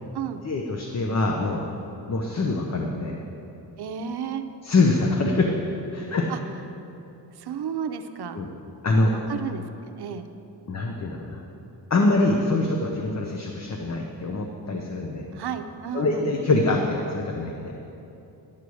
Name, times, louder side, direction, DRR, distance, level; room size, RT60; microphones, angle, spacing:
voice 1, 0.4-1.6 2.1-3.2 4.6-6.3 8.3-8.5 8.8-9.1 10.7-11.4 11.9-15.3 15.9-17.7, left 2 dB, 40° left, 1 dB, 0.8 m, -24 dB
voice 2, 3.8-4.4 6.3-6.4 7.3-8.4 9.1-10.3 15.3-16.3, right 8 dB, 70° right, 8 dB, 0.7 m, -32 dB
11.5 x 4.7 x 8.4 m, 2.9 s
wide cardioid pair, 115°, 40 cm